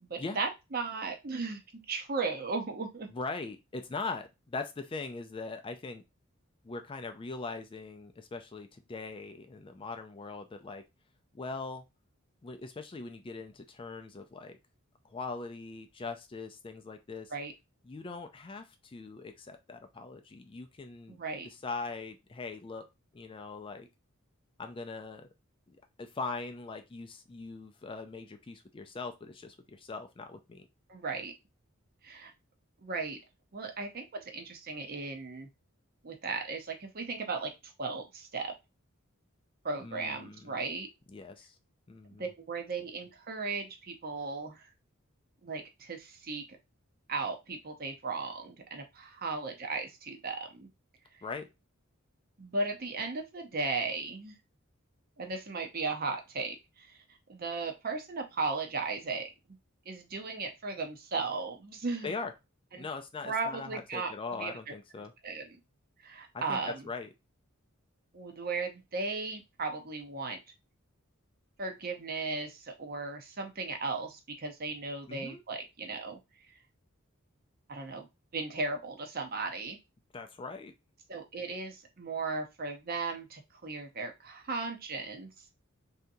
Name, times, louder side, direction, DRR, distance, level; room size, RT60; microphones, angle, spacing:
voice 1, 0.0-1.6 1.9-3.1 17.3-17.5 21.1-21.5 30.9-31.3 32.0-32.3 32.8-33.2 33.5-35.5 36.0-37.5 37.8-38.5 39.6-40.9 42.1-44.7 45.4-46.4 47.1-50.7 52.4-54.3 55.2-57.0 57.3-59.3 59.9-62.1 62.7-62.9 63.2-64.1 64.4-64.5 65.2-65.5 66.0-66.8 68.1-70.4 71.6-76.2 77.7-78.1 78.3-79.8 81.1-85.3, right 3 dB, 45° right, 5 dB, 0.7 m, -36 dB
voice 2, 3.1-6.0 6.6-10.8 11.3-11.8 12.4-14.6 15.0-17.3 17.8-21.2 21.4-22.9 23.1-23.9 24.6-25.3 25.7-30.7 39.8-40.6 41.1-41.6 41.9-42.3 51.2-51.5 62.0-62.3 62.8-65.1 66.3-67.1 75.1-75.4 80.1-80.7, left 3 dB, 25° left, 7 dB, 0.4 m, -41 dB
3.5 x 2.8 x 2.6 m, 0.23 s
head